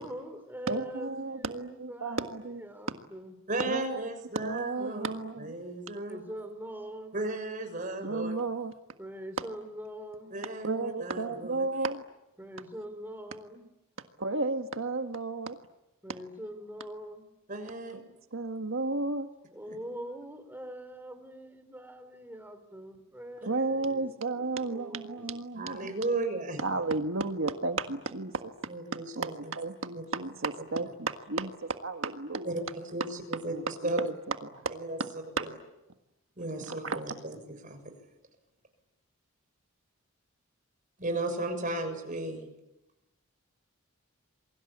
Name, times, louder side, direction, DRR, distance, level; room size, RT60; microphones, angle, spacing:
voice 1, 0.0-3.4 5.9-7.1 9.0-10.3 12.4-13.7 16.0-17.2 19.5-25.4, equal, 10° right, 8 dB, 3.8 m, -43 dB
voice 2, 0.7-2.6 3.7-3.9 4.4-5.5 8.0-8.7 10.6-12.0 14.2-15.6 18.3-19.3 23.5-25.9 26.6-28.5 29.1-32.6 33.5-34.1 34.4-34.7 35.4-35.5 36.6-37.0, right 3 dB, 65° right, 6 dB, 1.6 m, -33 dB
voice 3, 3.5-6.2 7.1-8.3 10.3-11.7 17.5-18.0 19.7-19.8 25.6-26.6 28.7-29.3 29.9-30.0 32.4-32.6 32.9-34.0 34.7-35.0 35.4-35.5 36.4-37.4 37.6-37.8 41.0-42.5, right 2 dB, 35° right, 6 dB, 6.5 m, -35 dB
28.5 x 23.5 x 8.8 m, 0.94 s
head